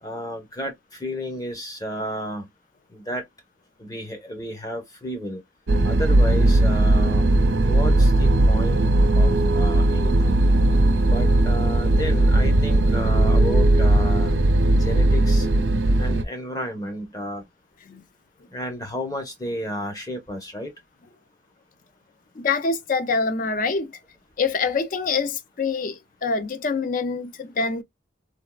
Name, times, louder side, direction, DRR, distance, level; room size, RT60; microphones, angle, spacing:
voice 1, 0.0-2.5 2.9-3.2 3.8-5.4 5.8-7.3 7.6-8.8 9.1-10.4 11.0-14.4 14.7-15.5 16.0-17.5 18.5-20.7, equal, 20° left, 0.8 m, -32 dB
sound 1, 5.7-16.2, right 1 dB, 70° right, 0.5 m, -18 dB
voice 2, 22.4-23.9 24.4-27.8, left 4 dB, 45° left, 0.4 m, -25 dB
3.4 x 2.3 x 2.2 m
head